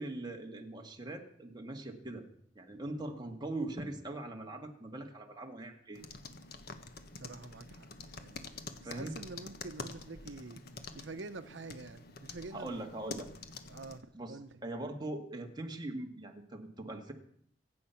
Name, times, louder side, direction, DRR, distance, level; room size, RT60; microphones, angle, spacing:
voice 1, 0.0-2.2 2.6-6.0 8.8-9.2 12.5-13.3 14.1-17.1, right 2 dB, 25° right, 2.0 m, -41 dB
sound 1, 5.9-14.0, left 3 dB, 60° left, 1.4 m, -47 dB
voice 2, 7.2-8.4 8.8-10.6 10.9-12.7 13.7-14.6, right 3 dB, 80° right, 0.8 m, -47 dB
25.5 x 8.6 x 5.8 m
head